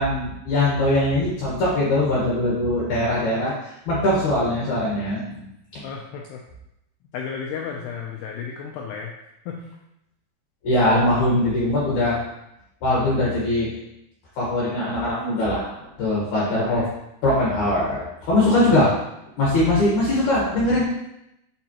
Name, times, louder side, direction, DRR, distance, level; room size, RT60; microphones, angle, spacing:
voice 1, 0.0-5.4 5.7-5.8 10.6-12.2 12.8-13.7 14.4-16.8 17.2-18.9 19.4-20.8, left 1 dB, 65° left, -6 dB, 2.0 m, -21 dB
voice 2, 5.8-6.4 7.1-9.1 9.5-9.7 16.4-16.9, left 6 dB, 90° left, 0 dB, 2.3 m, -33 dB
9.3 x 4.6 x 2.9 m, 0.84 s
omnidirectional pair, 5.4 m